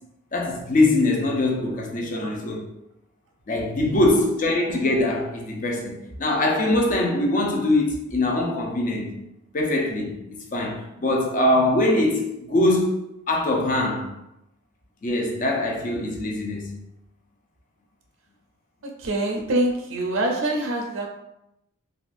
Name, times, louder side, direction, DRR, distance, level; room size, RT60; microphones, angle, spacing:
voice 1, 0.3-2.7 3.5-9.1 9.5-14.1 15.0-16.8, left 2 dB, 40° left, 0.5 m, -23 dB
voice 2, 19.0-21.1, right 1 dB, 75° right, 0.5 m, -25 dB
3.6 x 2.3 x 2.5 m
head